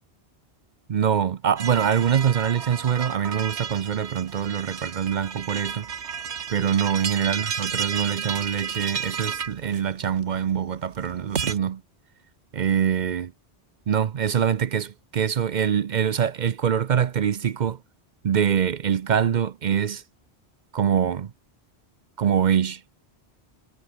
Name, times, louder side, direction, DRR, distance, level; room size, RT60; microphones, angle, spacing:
voice 1, 0.9-5.9 6.5-11.8 12.5-13.3 13.9-17.8 18.2-20.0 20.7-21.3 22.2-22.8, right 8 dB, 50° right, 0.6 m, -24 dB
sound 1, 1.6-11.6, right 6 dB, 85° right, 1.5 m, -32 dB
omnidirectional pair, 1.1 m